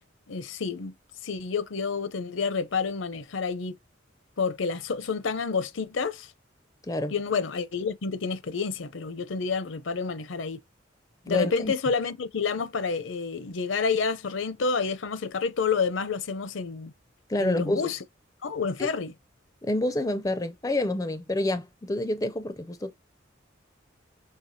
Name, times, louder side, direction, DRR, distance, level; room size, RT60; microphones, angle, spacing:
voice 1, 0.3-0.9 1.2-3.8 4.4-6.3 7.1-10.6 11.3-16.9 17.4-18.0 18.4-19.1, left 5 dB, 70° left, 0.6 m, -29 dB
voice 2, 11.2-11.7 17.3-17.8 18.8-18.9 19.6-22.9, left 1 dB, 15° left, 0.4 m, -28 dB
5.7 x 3.2 x 2.7 m
head